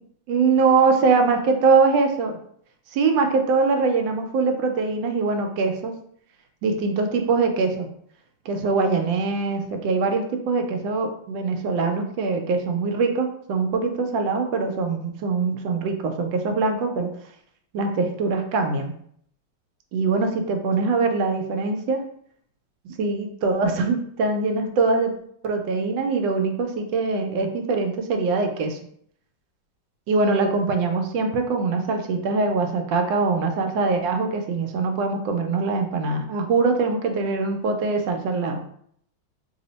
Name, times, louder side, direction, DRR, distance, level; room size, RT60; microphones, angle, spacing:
voice 1, 0.3-2.4 2.9-6.0 6.6-7.9 8.5-17.1 17.7-18.9 19.9-22.1 22.8-25.1 25.4-28.8 30.1-38.6, right 4 dB, 85° right, 5 dB, 1.3 m, -23 dB
3.4 x 2.0 x 3.9 m, 0.66 s
omnidirectional pair, 2.0 m